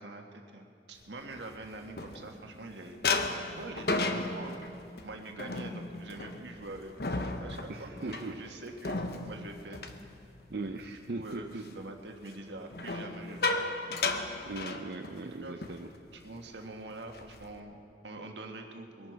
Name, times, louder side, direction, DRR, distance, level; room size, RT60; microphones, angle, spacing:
voice 1, 0.0-4.6 5.0-9.9 10.5-10.7 11.1-14.0 15.2-15.8 16.1-19.1, right 2 dB, 90° right, 3 dB, 1.5 m, -45 dB
sound 1, 1.2-2.6 3.0-10.9 11.2-11.5 12.7-15.3 15.6-15.8 16.1-16.4 16.9-17.6, left 3 dB, 60° left, 0.9 m, -35 dB
voice 2, 7.7-8.4 10.5-11.7 14.4-15.9, right 3 dB, 70° right, 4 dB, 0.6 m, -39 dB
22.5 x 11.5 x 4.7 m, 2.6 s
head